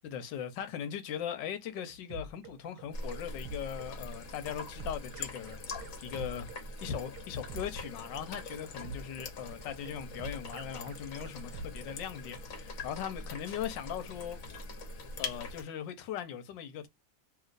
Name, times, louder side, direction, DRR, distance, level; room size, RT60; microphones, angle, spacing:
voice 1, 0.0-6.5 6.8-14.4 15.2-16.9, left 9 dB, 75° left, 1.4 m, -39 dB
sound 1, 1.4-12.1, right 3 dB, 70° right, 1.1 m, -46 dB
sound 2, 2.9-15.6, left 3 dB, 60° left, 1.1 m, -43 dB
3.0 x 2.9 x 2.4 m
omnidirectional pair, 2.1 m